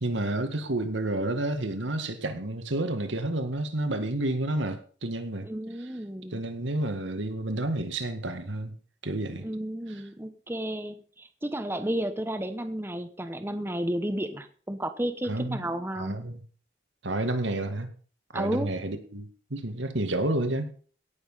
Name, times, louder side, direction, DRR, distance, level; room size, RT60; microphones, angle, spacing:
voice 1, 0.0-5.5 6.3-8.7 9.0-9.5 9.9-10.0 15.3-15.6 15.9-16.4 17.0-17.9 18.3-20.7, right 1 dB, 85° right, 7 dB, 1.9 m, -30 dB
voice 2, 5.4-6.4 9.4-16.2 18.3-18.7, right 1 dB, 10° right, 9 dB, 1.0 m, -32 dB
17.5 x 7.1 x 5.6 m, 0.42 s
head